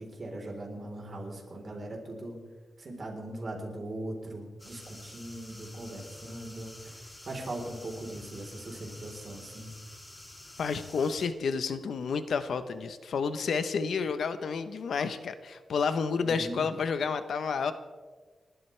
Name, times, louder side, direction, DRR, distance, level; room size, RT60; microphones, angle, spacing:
voice 1, 0.0-2.4 2.8-9.7 16.2-16.7, right 1 dB, 35° right, 0 dB, 3.8 m, -40 dB
sound 1, 4.6-11.3, left 1 dB, 15° left, 1.9 m, -49 dB
voice 2, 10.6-17.7, left 5 dB, 70° left, 10 dB, 0.9 m, -30 dB
29.5 x 13.0 x 3.3 m, 1.5 s
wide cardioid pair, 140°, 0 cm